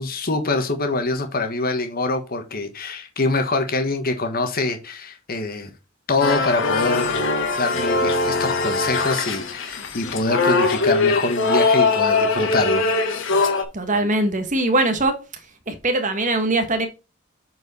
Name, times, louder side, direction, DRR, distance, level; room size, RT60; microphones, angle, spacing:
voice 1, 0.0-5.7 6.1-7.3 7.6-12.8, left 2 dB, 40° left, 1.3 m, -24 dB
sound 1, 6.2-13.6, left 3 dB, 60° left, 1.5 m, -21 dB
voice 2, 13.7-15.2 15.7-16.9, right 2 dB, 35° right, 1.4 m, -21 dB
8.2 x 4.7 x 4.2 m
head